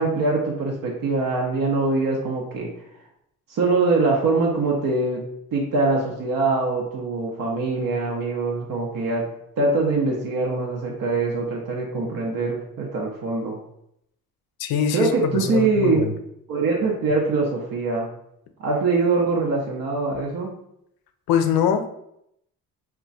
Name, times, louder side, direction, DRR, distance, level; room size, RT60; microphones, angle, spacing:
voice 1, 0.0-2.9 3.5-5.2 5.5-9.3 9.6-13.6 14.9-16.0 16.5-18.1 18.6-20.5, right 3 dB, 60° right, -1 dB, 0.7 m, -23 dB
voice 2, 14.6-16.1 21.3-21.9, left 8 dB, 70° left, 7 dB, 0.5 m, -23 dB
2.2 x 2.2 x 3.8 m, 0.76 s
cardioid pair, 75°, 38 cm